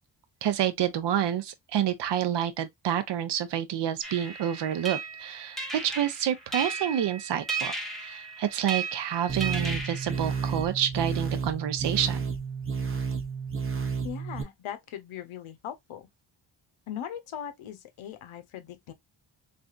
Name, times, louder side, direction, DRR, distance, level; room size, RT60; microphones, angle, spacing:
voice 1, 0.4-12.3, right 10 dB, 60° right, 0.7 m, -28 dB
sound 1, 4.0-10.7, right 4 dB, ahead, 0.8 m, -36 dB
sound 2, 9.3-14.4, right 5 dB, 30° right, 0.7 m, -31 dB
voice 2, 14.0-16.0 16.9-18.9, left 10 dB, 90° left, 0.8 m, -39 dB
3.3 x 2.6 x 2.3 m
cardioid pair, 95°, 47 cm